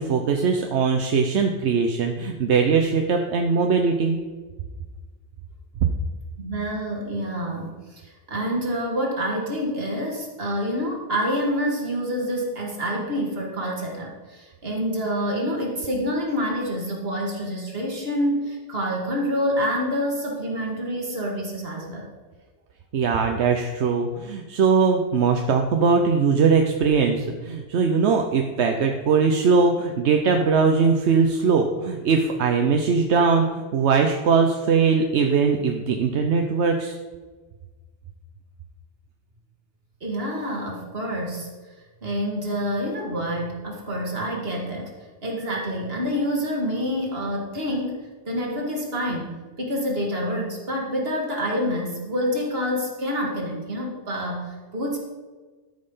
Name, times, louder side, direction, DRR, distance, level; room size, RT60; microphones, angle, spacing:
voice 1, 0.0-4.2 22.9-37.0, right 5 dB, 85° right, 4 dB, 1.0 m, -21 dB
voice 2, 6.4-22.1 40.0-41.5 42.0-44.9 45.2-49.3 49.6-55.0, equal, 60° right, -1 dB, 2.2 m, -27 dB
13.0 x 5.4 x 5.5 m, 1.3 s
omnidirectional pair, 1.1 m